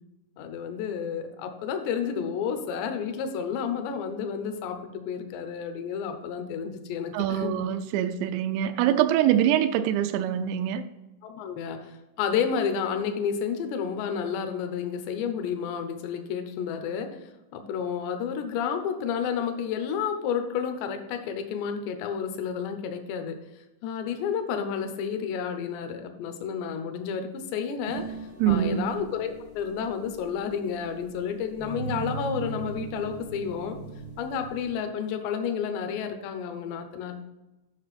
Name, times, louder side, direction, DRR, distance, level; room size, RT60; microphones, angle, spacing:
voice 1, 0.4-7.6 11.2-17.2 17.5-23.4 23.8-33.8 34.2-37.2, left 7 dB, 80° left, 7 dB, 2.6 m, -31 dB
voice 2, 7.1-10.8 28.4-28.9, right 10 dB, 90° right, 8 dB, 3.3 m, -24 dB
sound 1, 27.9-34.8, right 4 dB, 65° right, 0.6 m, -39 dB
9.8 x 6.2 x 4.1 m, 1.0 s
omnidirectional pair, 5.9 m